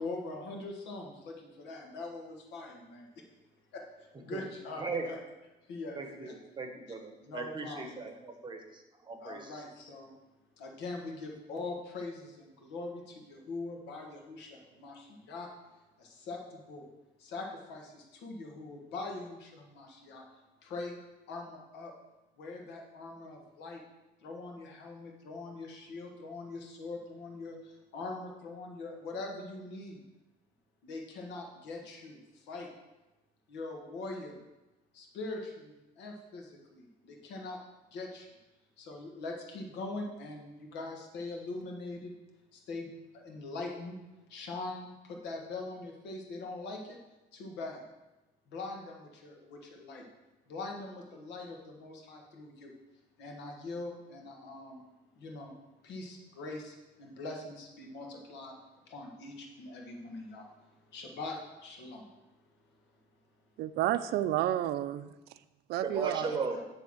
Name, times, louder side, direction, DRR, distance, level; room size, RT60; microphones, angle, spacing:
voice 1, 0.0-3.1 3.7-5.2 5.7-6.4 7.2-8.2 9.2-10.2 10.6-15.5 16.0-16.9 17.2-20.2 20.6-21.0 21.3-21.9 22.4-23.8 24.2-30.0 30.8-32.7 33.5-34.4 34.9-37.6 37.9-38.3 38.8-42.1 42.5-44.0 44.3-47.0 47.3-47.8 48.5-50.1 50.5-52.7 53.2-54.8 55.2-55.5 55.8-58.6 58.9-62.1 66.2-66.6, left 2 dB, 85° left, 1 dB, 1.5 m, -42 dB
voice 2, 5.9-9.5 65.8-66.6, right 4 dB, 25° right, 4 dB, 1.1 m, -37 dB
voice 3, 63.6-65.1 65.7-66.4, right 13 dB, 75° right, 13 dB, 0.4 m, -30 dB
9.5 x 3.5 x 6.1 m, 1.1 s
cardioid pair, 110°, 17 cm